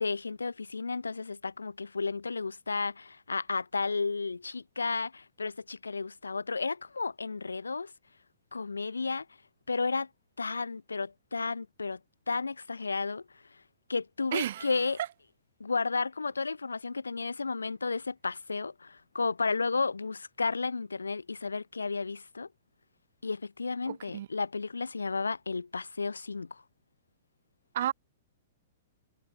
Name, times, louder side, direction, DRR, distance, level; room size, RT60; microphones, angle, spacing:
voice 1, 0.0-7.9 8.5-9.3 9.7-10.1 10.4-12.0 12.3-13.2 13.9-15.0 15.6-22.5 23.2-26.6, left 4 dB, 80° left, 0.5 m, -33 dB
voice 2, 14.3-14.7 23.8-24.3 27.7-27.9, right 12 dB, 55° right, 1.1 m, -32 dB
figure-of-eight pair, 110°, 0 cm